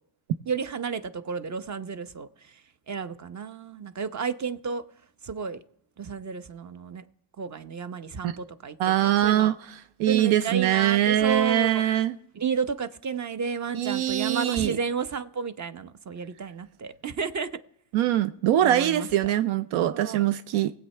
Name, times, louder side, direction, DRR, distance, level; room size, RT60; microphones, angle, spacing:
voice 1, 0.5-2.6 2.9-4.8 5.2-5.6 6.0-7.0 7.4-8.8 9.0-9.6 10.1-11.8 12.3-17.5 18.6-19.3 19.8-20.2, right 5 dB, 35° right, 0.8 m, -32 dB
voice 2, 8.8-12.2 13.7-14.8 17.9-20.7, right 12 dB, 90° right, 0.6 m, -23 dB
19.0 x 8.1 x 3.3 m
cardioid pair, 75°, 47 cm